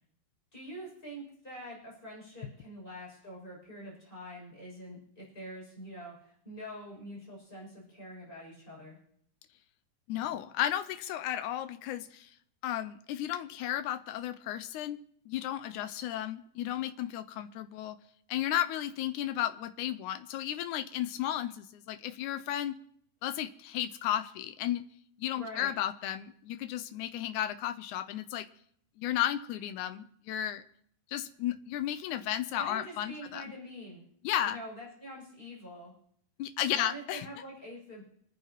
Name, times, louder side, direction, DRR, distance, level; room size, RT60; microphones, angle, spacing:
voice 1, 0.5-9.0 25.3-25.7 32.6-34.0 34.4-36.0 36.7-38.0, equal, 15° left, -3 dB, 6.7 m, -45 dB
voice 2, 10.1-12.3 12.6-15.0 15.3-18.0 18.3-22.8 23.2-24.8 25.2-28.5 29.0-30.6 31.1-33.4 34.2-34.6 36.4-37.3, left 12 dB, 85° left, 10 dB, 1.8 m, -34 dB
27.5 x 10.5 x 3.0 m, 0.66 s
omnidirectional pair, 4.2 m